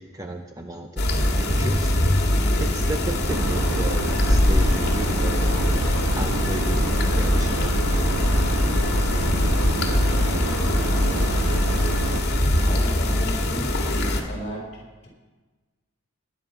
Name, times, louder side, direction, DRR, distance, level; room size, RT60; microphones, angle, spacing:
voice 1, 0.0-2.0 2.6-5.8 6.2-7.7 7.9-8.0, right 1 dB, 15° right, 4 dB, 0.7 m, -34 dB
sound 1, 1.0-14.2, left 1 dB, 50° left, 2.1 m, -22 dB
sound 2, 3.3-12.2, right 1 dB, 85° right, 1.4 m, -27 dB
voice 2, 12.6-13.9 14.2-15.1, equal, 30° left, 0 dB, 4.3 m, -35 dB
20.5 x 9.5 x 5.8 m, 1.3 s
head